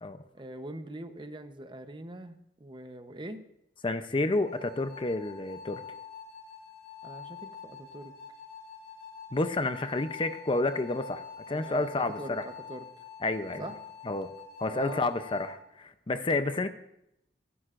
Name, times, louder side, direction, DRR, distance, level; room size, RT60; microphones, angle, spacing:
voice 1, 0.3-3.4 7.0-7.4 7.6-8.1 11.5-11.9 12.2-12.9 13.6-13.8 14.6-15.0, right 1 dB, 30° right, 8 dB, 0.8 m, -42 dB
voice 2, 3.8-5.8 9.3-12.5 13.2-13.6 14.1-14.3 14.6-16.7, left 2 dB, 30° left, 10 dB, 0.6 m, -30 dB
sound 1, 4.3-15.5, left 7 dB, 70° left, 3.3 m, -46 dB
25.5 x 11.0 x 2.5 m, 0.80 s
head